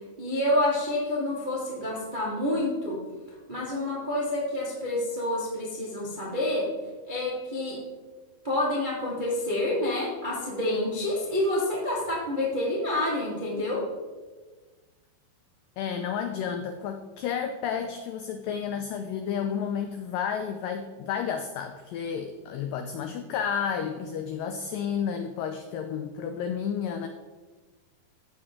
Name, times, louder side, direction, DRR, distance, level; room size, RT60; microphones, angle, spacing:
voice 1, 0.2-3.0 3.5-6.7 7.0-7.8 8.4-13.8, left 1 dB, 60° right, -5 dB, 0.5 m, -28 dB
voice 2, 15.8-27.1, left 7 dB, 85° left, 7 dB, 1.9 m, -31 dB
15.5 x 6.3 x 3.7 m, 1.3 s
omnidirectional pair, 4.6 m